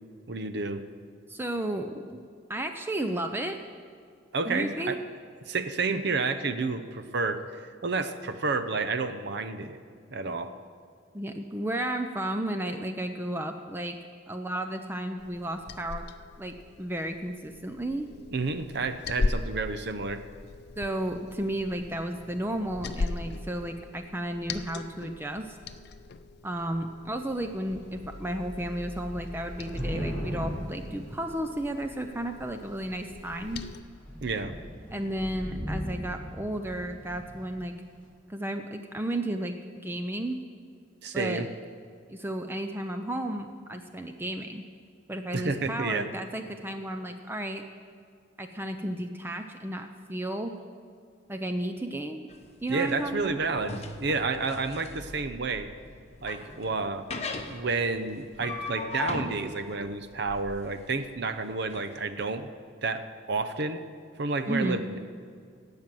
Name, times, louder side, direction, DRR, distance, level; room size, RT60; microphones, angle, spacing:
voice 1, 0.3-0.8 4.3-5.0 5.5-9.8 10.1-10.5 18.3-20.2 34.2-34.6 41.0-41.5 45.3-46.1 52.7-55.7 56.2-57.1 57.5-62.5 62.8-63.9 64.2-65.0, right 3 dB, 60° right, 10 dB, 0.7 m, -30 dB
voice 2, 1.3-2.2 2.5-3.6 4.5-5.0 11.1-14.0 14.3-16.0 16.4-18.1 20.8-25.6 26.4-33.7 34.9-37.7 38.3-39.5 39.8-40.4 41.1-41.4 42.1-44.6 45.1-47.6 48.4-50.6 51.3-52.2 52.6-53.4 64.5-64.8, right 1 dB, 10° right, 6 dB, 0.5 m, -33 dB
Liquid, 15.2-33.8, left 3 dB, 60° left, 0.5 m, -39 dB
Thunder / Rain, 27.3-27.4 27.7-31.8 32.5-33.0 33.4-33.6 33.8-37.6, equal, 5° left, 3.3 m, -38 dB
sound 1, 52.3-61.8, left 2 dB, 35° left, 1.0 m, -39 dB
16.5 x 5.8 x 7.6 m, 2.3 s
head